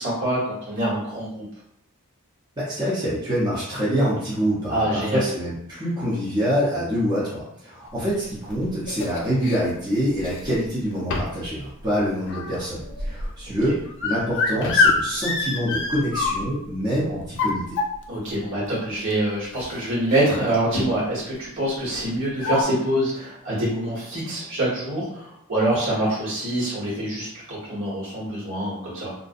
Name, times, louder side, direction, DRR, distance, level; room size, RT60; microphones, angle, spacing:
voice 1, 0.0-1.4 4.7-5.2 13.5-13.6 18.1-29.1, right 1 dB, 60° right, -7 dB, 1.4 m, -25 dB
voice 2, 2.6-17.6, equal, 20° right, -9 dB, 0.6 m, -25 dB
sound 1, 8.1-9.6 10.2-10.7 11.1-11.5 11.8-16.7 17.2-18.2 19.1-19.2 19.5-19.7 20.1-20.5 20.8-21.0 21.9-22.0 22.4-22.6, left 3 dB, 55° left, 0.4 m, -26 dB
2.4 x 2.1 x 2.5 m, 0.73 s
head